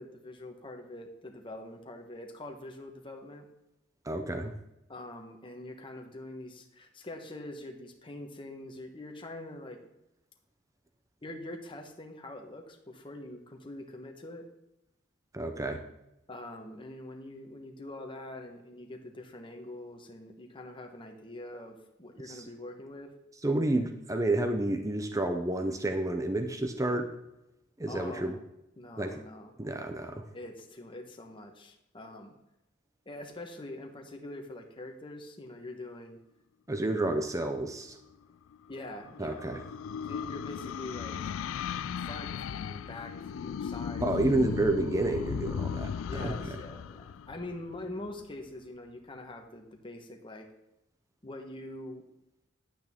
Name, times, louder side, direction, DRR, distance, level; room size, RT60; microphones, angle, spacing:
voice 1, 0.0-3.5 4.9-9.8 11.2-14.4 16.3-23.1 27.9-28.4 28.8-29.5 30.3-32.3 33.0-36.2 38.7-39.6 40.0-41.2 42.0-44.4 46.0-50.5 51.2-52.0, left 1 dB, 25° left, 3 dB, 1.2 m, -44 dB
voice 2, 4.1-4.5 15.3-15.8 22.3-22.4 23.4-27.1 27.8-28.3 29.0-29.2 29.6-30.2 36.7-38.0 39.2-39.6 44.0-46.6, right 2 dB, 15° right, 6 dB, 0.7 m, -30 dB
sound 1, 38.5-48.1, left 7 dB, 75° left, 0.3 m, -37 dB
10.5 x 8.6 x 3.6 m, 0.88 s
head